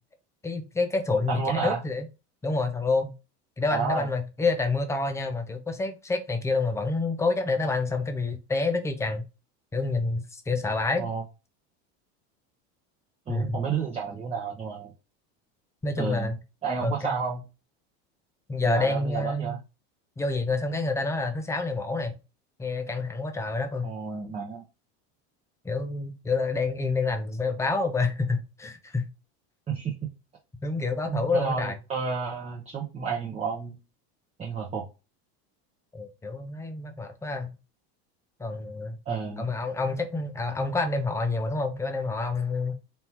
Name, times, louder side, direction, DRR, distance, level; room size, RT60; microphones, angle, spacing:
voice 1, 0.4-2.1 2.4-3.1 3.6-9.2 9.7-11.1 13.3-13.6 15.8-16.4 16.8-17.2 18.5-19.6 20.2-22.2 22.6-23.9 25.6-29.1 30.6-31.7 35.9-37.5 38.4-39.0 39.4-42.7, left 3 dB, 10° left, 0.7 m, -28 dB
voice 2, 1.3-1.8 3.7-4.1 11.0-11.2 13.3-14.9 16.0-16.3 16.6-17.4 18.7-19.6 23.8-24.6 29.7-29.9 31.1-33.8 34.4-34.9 39.1-39.5, right 5 dB, 20° right, 0.9 m, -31 dB
4.4 x 3.0 x 3.5 m
supercardioid pair, 140°, 33 cm